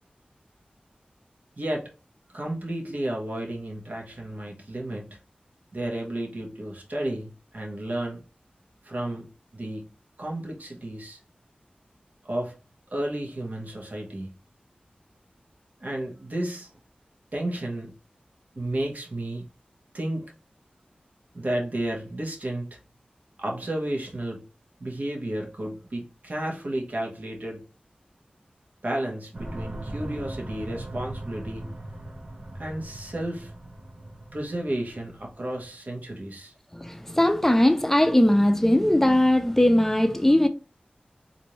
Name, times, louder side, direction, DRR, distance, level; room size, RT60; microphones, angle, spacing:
voice 1, 1.6-1.9 2.3-5.2 5.7-8.2 8.8-9.3 9.5-9.8 10.2-11.2 12.2-12.6 12.9-14.3 15.8-16.7 17.3-17.9 18.5-19.5 19.9-20.2 21.3-22.8 23.4-24.4 24.8-27.6 28.8-31.6 32.6-33.5 34.3-36.5, right 1 dB, 60° right, 1.1 m, -32 dB
sound 1, 29.3-35.7, right 1 dB, 35° right, 0.8 m, -39 dB
voice 2, 36.7-40.5, left 1 dB, 10° left, 0.6 m, -20 dB
4.0 x 2.6 x 3.1 m
wide cardioid pair, 60°, 3 cm